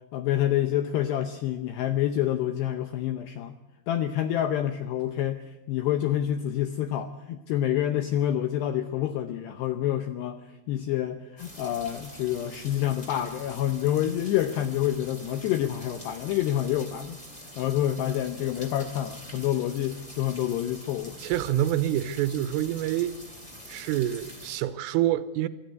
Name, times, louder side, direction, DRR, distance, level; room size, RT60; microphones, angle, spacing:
voice 1, 0.1-3.6 3.9-10.4 10.7-17.2 17.6-21.2, left 11 dB, 80° left, 2.4 m, -27 dB
sound 1, 11.4-24.6, equal, 10° left, 2.4 m, -45 dB
voice 2, 21.2-23.2 23.7-25.5, right 12 dB, 80° right, 3.3 m, -27 dB
24.5 x 13.5 x 9.5 m
omnidirectional pair, 5.9 m